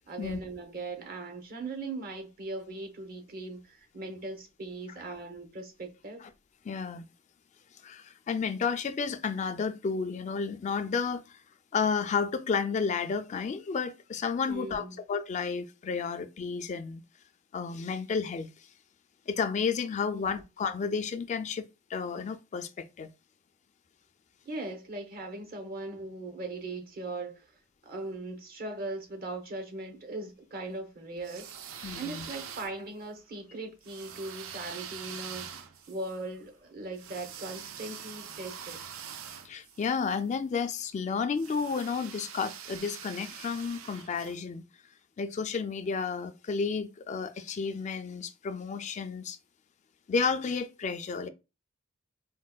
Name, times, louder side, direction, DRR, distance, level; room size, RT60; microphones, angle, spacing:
voice 1, 0.1-6.3 14.5-15.0 20.1-20.2 24.4-27.5 27.8-31.5 31.9-35.5 35.9-38.8, right 2 dB, 50° right, 0.9 m, -39 dB
voice 2, 6.6-7.1 7.8-11.4 11.7-17.0 17.5-18.5 19.3-21.6 21.9-23.1 31.8-32.3 39.4-44.6 45.2-49.4 50.1-51.3, left 5 dB, 35° left, 0.3 m, -32 dB
sound 1, 31.2-33.1 33.8-40.2 41.3-44.4, right 8 dB, 80° right, 0.4 m, -44 dB
4.3 x 2.1 x 2.3 m
head